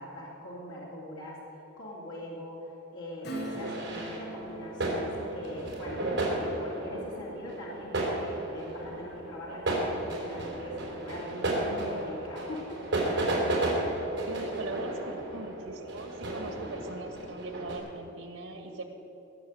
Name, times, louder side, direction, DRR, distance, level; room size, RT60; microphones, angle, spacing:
voice 1, 0.0-1.5 1.8-6.1 6.3-12.9, left 1 dB, 80° left, -5 dB, 2.7 m, -42 dB
Acoustic guitar / Strum, 3.2-9.4 9.8-9.9, right 1 dB, 50° left, 1.6 m, -44 dB
sound 1, 3.3-17.8, right 1 dB, 60° right, 3.6 m, -33 dB
voice 2, 14.3-18.8, right 2 dB, 85° right, 5 dB, 1.8 m, -40 dB
19.5 x 6.7 x 7.9 m, 2.9 s
head